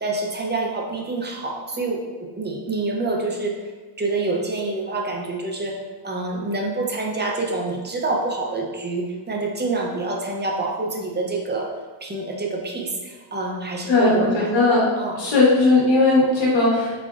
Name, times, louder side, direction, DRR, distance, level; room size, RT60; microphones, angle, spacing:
voice 1, 0.0-3.6 4.0-11.7 12.0-14.5 15.0-15.2, right 3 dB, 20° right, 0 dB, 0.6 m, -27 dB
voice 2, 13.9-14.8 15.2-17.1, left 3 dB, 65° left, -5 dB, 1.4 m, -18 dB
4.2 x 3.5 x 2.4 m, 1.4 s
cardioid pair, 95°, 49 cm